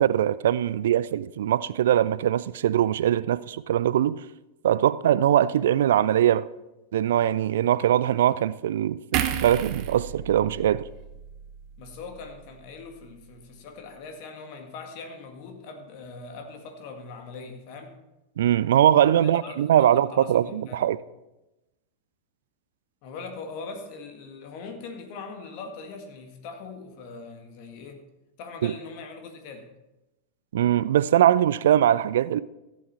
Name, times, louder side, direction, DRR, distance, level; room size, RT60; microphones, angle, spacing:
voice 1, 0.0-4.2 4.6-6.5 6.9-10.8 18.4-21.0 28.6-28.7 30.5-32.4, right 11 dB, 60° right, 0.3 m, -22 dB
sound 1, 9.1-12.5 12.8-13.0, right 9 dB, 40° right, 0.9 m, -33 dB
voice 2, 11.8-17.9 19.1-20.9 23.0-28.0 28.4-29.7, left 4 dB, 45° left, 1.8 m, -41 dB
14.5 x 8.4 x 4.3 m
figure-of-eight pair, 90°, 0 cm